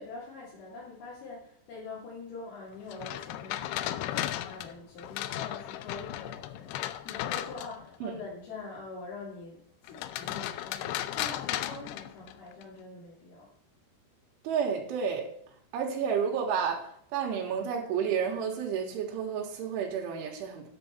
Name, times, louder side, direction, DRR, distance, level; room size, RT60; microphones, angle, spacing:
voice 1, 0.0-13.5, left 3 dB, 60° left, -7 dB, 4.3 m, -44 dB
sound 1, 2.9-8.0 9.9-12.6, left 13 dB, 90° left, 2.3 m, -35 dB
voice 2, 14.4-15.3 15.7-20.7, right 7 dB, 85° right, 0 dB, 4.1 m, -31 dB
9.3 x 8.6 x 4.4 m, 0.66 s
omnidirectional pair, 5.4 m